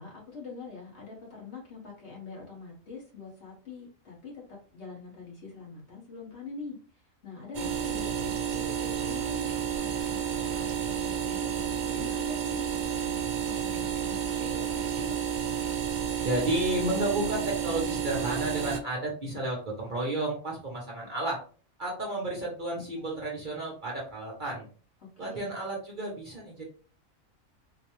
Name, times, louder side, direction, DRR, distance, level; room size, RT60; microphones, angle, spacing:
voice 1, 0.0-6.8 7.2-15.2 25.2-25.5, left 4 dB, 55° left, -3 dB, 1.7 m, -44 dB
sound 1, 7.5-18.8, right 8 dB, 85° right, 0.4 m, -31 dB
voice 2, 16.2-21.4 21.8-24.7 25.2-26.6, right 1 dB, 45° right, -2 dB, 0.9 m, -32 dB
4.0 x 2.3 x 3.0 m, 0.39 s
omnidirectional pair, 1.4 m